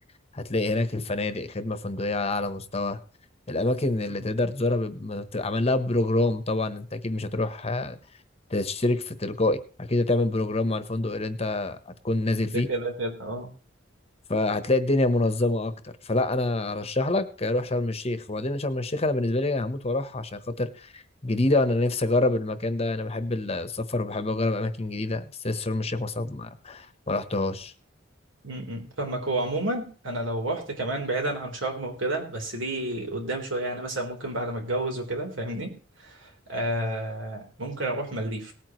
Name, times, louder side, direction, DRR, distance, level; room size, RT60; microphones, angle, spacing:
voice 1, 0.3-3.0 3.5-8.0 8.5-12.7 14.3-27.7, left 2 dB, 30° left, 11 dB, 1.0 m, -26 dB
voice 2, 12.5-13.5 28.4-35.7 36.0-38.5, right 1 dB, 85° right, 1 dB, 3.8 m, -30 dB
19.0 x 9.1 x 3.1 m, 0.39 s
head